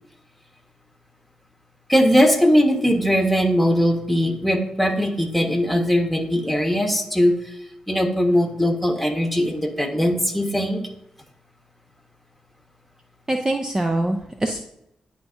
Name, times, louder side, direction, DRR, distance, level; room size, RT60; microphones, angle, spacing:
voice 1, 1.9-7.5 7.9-10.8, equal, ahead, 3 dB, 1.4 m, -20 dB
voice 2, 13.3-14.6, right 1 dB, 25° right, 4 dB, 0.6 m, -23 dB
10.0 x 3.6 x 2.6 m, 0.80 s
supercardioid pair, 45°, 2 cm